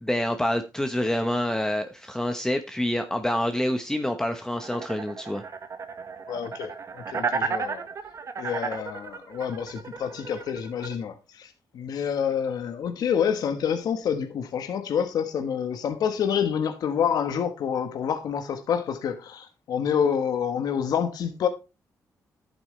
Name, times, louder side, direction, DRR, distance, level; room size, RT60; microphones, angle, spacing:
voice 1, 0.0-5.4, left 1 dB, 10° left, 1.1 m, -27 dB
sound 1, 4.6-10.9, right 5 dB, 50° right, 1.5 m, -33 dB
voice 2, 6.3-7.8 8.4-21.5, left 7 dB, 75° left, 1.3 m, -28 dB
11.0 x 8.9 x 3.3 m
cardioid pair, 85°, 7 cm